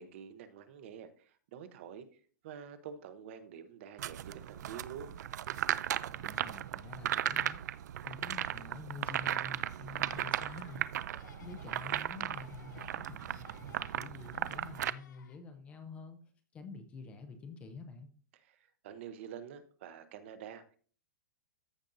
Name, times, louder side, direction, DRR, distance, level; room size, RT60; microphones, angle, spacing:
voice 1, 0.0-5.1 18.3-20.8, right 8 dB, 40° right, 11 dB, 0.8 m, -48 dB
sound 1, 4.0-14.9, right 11 dB, 65° right, 0.4 m, -36 dB
voice 2, 6.1-7.6 8.0-10.9 11.2-16.2 16.5-18.1, left 4 dB, 10° left, 7 dB, 0.5 m, -48 dB
Laughter, 9.9-10.8 11.1-12.0 12.3-15.6, left 9 dB, 70° left, 0.7 m, -59 dB
14.5 x 5.1 x 2.6 m, 0.44 s
supercardioid pair, 175°, 10 cm